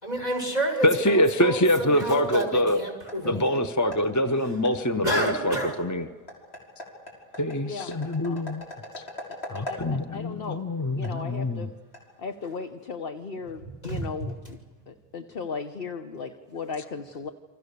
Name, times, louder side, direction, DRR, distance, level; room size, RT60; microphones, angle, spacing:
voice 1, 0.0-3.7 5.0-5.8 13.8-14.3, right 1 dB, 45° left, 2 dB, 6.3 m, -29 dB
voice 2, 0.8-2.8 3.2-6.1 7.4-8.6 9.5-11.6, left 1 dB, 20° left, 9 dB, 0.8 m, -24 dB
sound 1, 1.4-12.7, equal, 90° left, 6.0 m, -44 dB
voice 3, 7.6-7.9 8.2-8.5 9.3-9.4 9.6-10.6 10.9-11.7 12.2-14.6 14.9-17.3, left 5 dB, 65° left, 7 dB, 1.3 m, -36 dB
29.0 x 25.5 x 6.8 m, 1.4 s
omnidirectional pair, 1.0 m